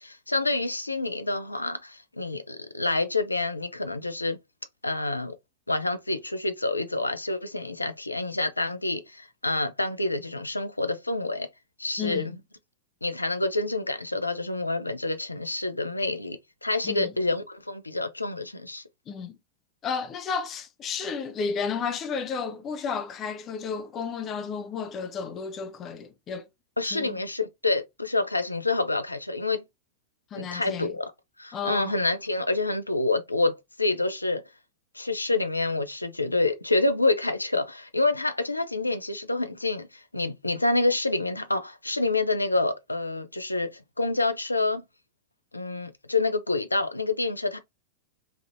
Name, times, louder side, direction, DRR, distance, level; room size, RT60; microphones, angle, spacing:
voice 1, 0.0-4.4 4.8-5.3 5.7-11.5 11.8-12.4 13.0-18.8 26.8-29.6 30.3-31.1 31.4-34.4 34.9-44.8 45.5-47.6, left 2 dB, 85° left, 0.4 m, -27 dB
voice 2, 12.0-12.4 16.8-17.1 19.1-19.4 19.8-26.5 26.8-27.2 30.3-30.9 31.5-31.9, left 6 dB, 30° left, 0.5 m, -32 dB
3.3 x 2.4 x 2.6 m
figure-of-eight pair, 90°, 0 cm